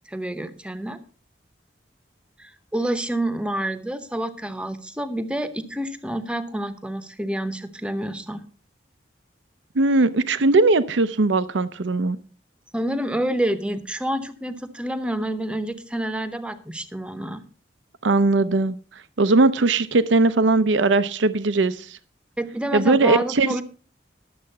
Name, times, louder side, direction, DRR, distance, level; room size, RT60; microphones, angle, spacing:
voice 1, 0.1-1.0 2.4-8.4 12.7-17.4 22.4-23.6, right 1 dB, 5° right, 10 dB, 0.8 m, -28 dB
voice 2, 9.8-12.2 18.0-18.8 19.2-22.0 22.7-23.6, right 3 dB, 80° right, 13 dB, 0.6 m, -19 dB
12.0 x 7.6 x 5.4 m, 0.40 s
head